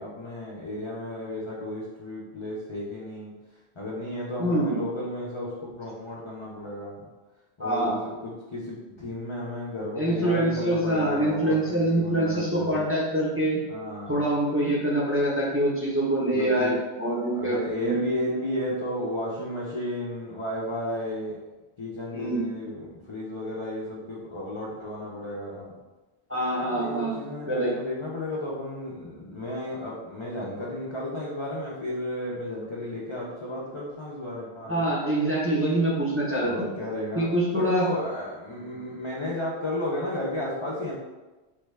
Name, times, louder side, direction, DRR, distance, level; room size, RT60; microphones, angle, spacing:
voice 1, 0.0-7.0 7.6-12.9 13.7-14.3 16.3-16.8 17.3-21.4 21.8-25.8 26.7-34.9 36.4-40.9, left 1 dB, 50° left, -5 dB, 0.3 m, -33 dB
voice 2, 4.4-4.8 7.6-7.9 10.0-13.6 14.1-16.7 17.0-18.0 22.1-22.4 26.3-27.2 27.5-27.7 34.7-36.5 37.2-37.9, right 1 dB, 15° right, -7 dB, 0.5 m, -25 dB
3.3 x 2.2 x 3.2 m, 1.2 s
omnidirectional pair, 1.1 m